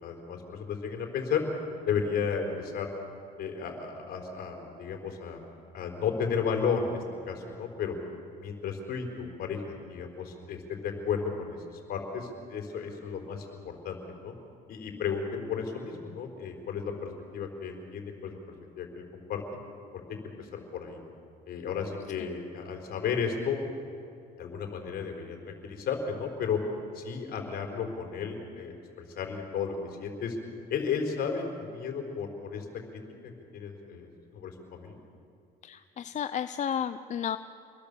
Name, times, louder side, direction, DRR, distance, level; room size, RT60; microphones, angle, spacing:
voice 1, 0.0-1.4 1.8-2.9 3.4-5.4 5.7-8.0 8.4-9.6 9.9-14.0 14.2-14.3 14.7-18.4 18.8-19.0 19.3-19.4 20.2-21.0 21.5-23.6 24.4-26.6 26.9-28.8 29.1-30.4 30.7-32.6 32.9-33.0 33.5-35.0, left 6 dB, 65° left, 3 dB, 4.7 m, -33 dB
voice 2, 35.6-37.4, left 9 dB, 45° left, 11 dB, 0.7 m, -32 dB
28.0 x 21.5 x 7.0 m, 2.5 s
cardioid pair, 110°, 17 cm